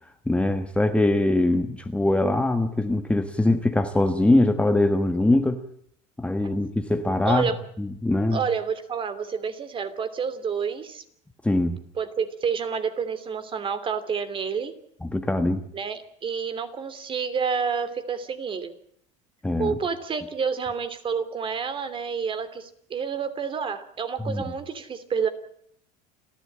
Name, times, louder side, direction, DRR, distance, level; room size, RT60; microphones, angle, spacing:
voice 1, 0.3-5.6 6.2-7.5 7.8-8.4 11.4-11.8 15.0-15.6 19.4-19.7 24.2-24.4, left 2 dB, 5° left, 7 dB, 1.3 m, -22 dB
voice 2, 7.2-7.6 8.3-11.0 12.0-14.7 15.7-18.7 19.6-25.3, right 6 dB, 30° right, 11 dB, 3.0 m, -29 dB
29.5 x 12.0 x 8.6 m, 0.68 s
supercardioid pair, 120°, 17 cm